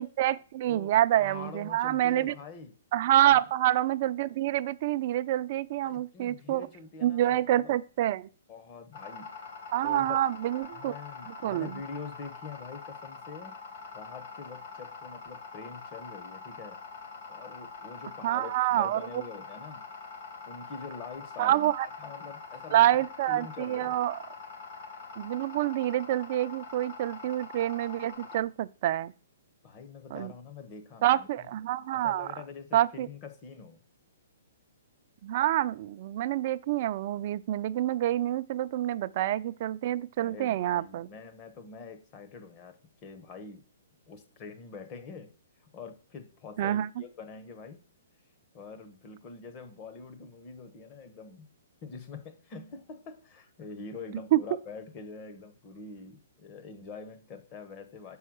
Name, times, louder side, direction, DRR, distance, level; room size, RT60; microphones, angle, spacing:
voice 1, 0.0-2.3 2.9-6.7 7.0-8.3 9.7-10.9 11.4-11.8 18.2-19.0 21.4-21.9 22.7-24.2 25.2-29.1 30.1-30.3 31.0-32.3 32.7-33.1 35.2-41.1 46.6-46.9 54.3-54.4, right 13 dB, 45° right, 0.5 m, -27 dB
voice 2, 0.7-2.8 3.2-3.4 5.8-7.7 8.5-9.4 9.8-10.2 10.7-13.5 13.9-16.8 17.3-19.9 20.5-21.7 22.0-24.0 29.6-31.5 31.9-33.9 40.2-43.6 44.1-45.3 45.6-47.9 48.5-51.5 51.8-58.2, left 5 dB, 30° left, 1.2 m, -45 dB
sound 1, 8.9-28.4, left 4 dB, 55° left, 3.1 m, -44 dB
6.9 x 5.5 x 6.4 m
hypercardioid pair, 155°, 0 cm